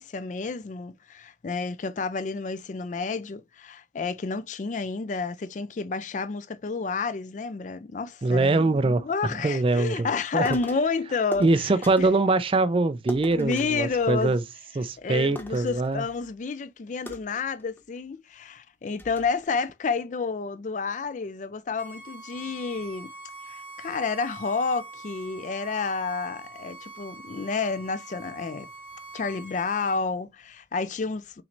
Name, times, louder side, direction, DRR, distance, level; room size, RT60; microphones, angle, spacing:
voice 1, 0.0-11.7 12.0-12.1 13.3-14.4 15.0-23.1 23.5-28.7 29.1-31.4, left 4 dB, 45° left, 0.4 m, -30 dB
voice 2, 8.2-10.1 10.3-10.5 11.4-14.4 14.8-16.0, right 2 dB, 30° right, 0.4 m, -23 dB
sound 1, 10.4-10.9 11.3-12.2 13.1-14.7 15.0-15.1 15.3-16.3 17.1-18.0 18.5-18.6 19.0-19.5, equal, 10° left, 0.7 m, -41 dB
Bowed string instrument, 21.8-30.0, right 3 dB, 10° right, 1.4 m, -44 dB
5.7 x 3.2 x 2.6 m
head